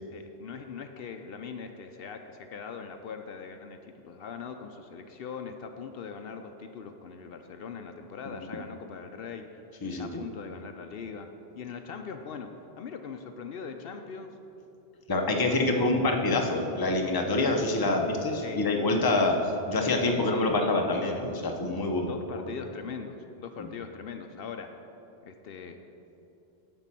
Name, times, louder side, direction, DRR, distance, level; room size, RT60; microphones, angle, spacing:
voice 1, 0.1-9.5 10.0-11.3 11.5-12.5 12.8-14.3 15.5-16.1 17.8-18.0 18.4-18.6 19.3-19.4 20.0-20.7 22.1-24.7 25.2-25.8, left 6 dB, 70° left, 6 dB, 0.8 m, -41 dB
voice 2, 9.8-10.2 15.1-19.4 19.7-22.1 22.4-22.5 23.6-23.7, left 2 dB, 25° left, 2 dB, 0.7 m, -26 dB
10.5 x 4.5 x 7.5 m, 2.9 s
omnidirectional pair, 1.0 m